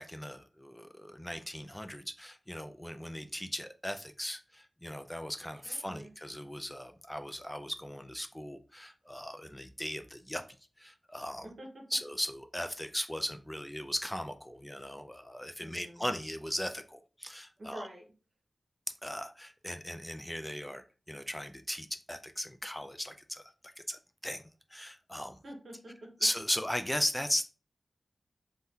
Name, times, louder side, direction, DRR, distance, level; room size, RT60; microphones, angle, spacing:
voice 1, 0.0-10.4 10.8-11.5 11.9-17.9 19.0-24.4 24.7-25.4 26.2-27.5, equal, 10° left, 8 dB, 0.3 m, -37 dB
voice 2, 5.5-6.1 11.4-11.8 15.6-16.1 17.6-18.1 25.4-26.1, right 1 dB, 70° right, 1 dB, 0.9 m, -47 dB
2.7 x 2.2 x 3.5 m, 0.36 s
cardioid pair, 50°, 0 cm